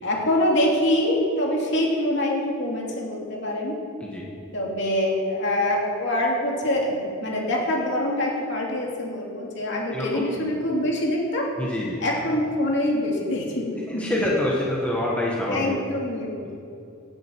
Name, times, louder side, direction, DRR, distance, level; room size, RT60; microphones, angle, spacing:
voice 1, 0.0-3.7 4.5-11.4 12.0-14.1 15.5-16.3, left 1 dB, 55° left, -2 dB, 2.8 m, -25 dB
voice 2, 9.9-10.3 11.6-12.0 13.9-15.7 16.4-16.5, left 1 dB, 5° left, -4 dB, 1.5 m, -26 dB
17.0 x 9.8 x 4.7 m, 2.6 s
head